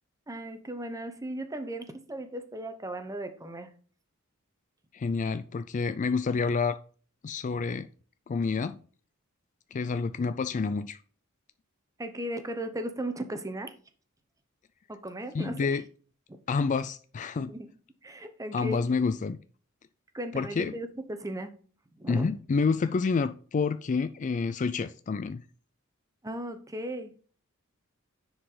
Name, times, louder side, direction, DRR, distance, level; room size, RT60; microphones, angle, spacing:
voice 1, 0.3-3.7 12.0-13.7 14.9-15.8 16.3-16.4 17.5-17.7 18.0-18.8 20.1-21.5 21.9-22.3 26.2-27.1, right 1 dB, 15° right, 0.9 m, -36 dB
voice 2, 4.9-6.8 7.2-7.9 8.3-8.8 9.7-11.0 15.3-15.8 16.5-17.5 18.5-19.4 20.3-20.7 22.1-25.4, left 4 dB, 35° left, 0.3 m, -28 dB
9.8 x 4.8 x 3.9 m
head